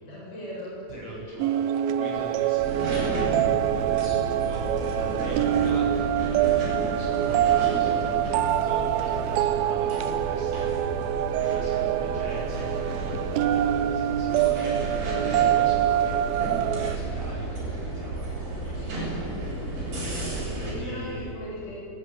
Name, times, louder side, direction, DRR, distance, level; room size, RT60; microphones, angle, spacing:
voice 1, 0.0-0.8 20.6-21.8, left 1 dB, 15° left, -6 dB, 7.3 m, -38 dB
voice 2, 0.9-19.3 20.2-21.3, right 1 dB, 35° left, -5 dB, 8.9 m, -41 dB
sound 1, 1.4-17.0, right 12 dB, 80° right, 2.2 m, -25 dB
sound 2, 2.6-20.7, right 2 dB, 65° right, 9.5 m, -32 dB
22.0 x 21.5 x 9.5 m, 2.9 s
omnidirectional pair, 5.0 m